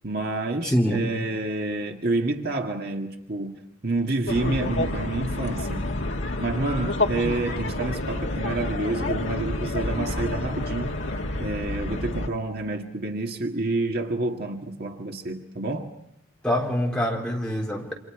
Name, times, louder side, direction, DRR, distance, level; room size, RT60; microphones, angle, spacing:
voice 1, 0.0-5.9 6.4-10.9 11.4-15.9, right 2 dB, 50° right, 2 dB, 1.9 m, -29 dB
voice 2, 0.6-1.0 16.4-17.9, equal, 5° left, -2 dB, 4.2 m, -25 dB
sound 1, 4.3-12.3, left 2 dB, 60° left, 1.9 m, -28 dB
29.0 x 27.0 x 4.8 m, 0.83 s
head